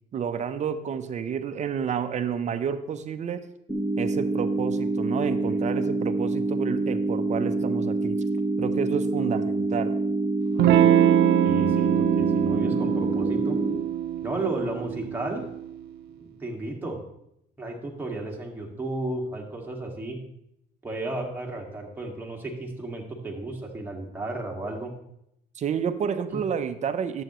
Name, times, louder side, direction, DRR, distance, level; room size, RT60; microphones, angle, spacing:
voice 1, 0.1-3.4 4.0-8.2 8.6-10.0 25.5-27.2, right 7 dB, 45° right, 10 dB, 0.7 m, -30 dB
sound 1, 3.7-13.7, right 2 dB, 5° left, 2.3 m, -26 dB
Electric guitar / Strum, 10.6-15.7, right 11 dB, 80° right, 0.6 m, -23 dB
voice 2, 11.4-13.6 14.2-15.4 16.2-17.0 17.6-20.2 20.8-24.9 26.3-26.4, right 2 dB, 10° right, -1 dB, 2.0 m, -33 dB
11.0 x 7.8 x 3.1 m, 0.78 s
cardioid pair, 110°, 17 cm